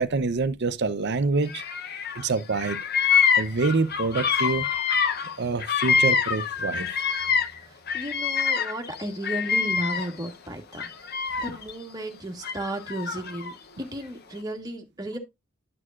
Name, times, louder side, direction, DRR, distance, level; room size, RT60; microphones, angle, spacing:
voice 1, 0.0-1.6 2.1-2.8 3.3-4.7 5.4-6.9, right 3 dB, 55° right, 0.7 m, -26 dB
Bird vocalization bird call bird song, 1.5-2.2 2.5-7.6 7.9-10.3 10.7-11.7 12.4-13.5, left 6 dB, 50° left, 0.8 m, -25 dB
voice 2, 7.6-10.9 11.4-15.2, right 1 dB, 20° right, 1.4 m, -34 dB
11.0 x 6.4 x 2.4 m
head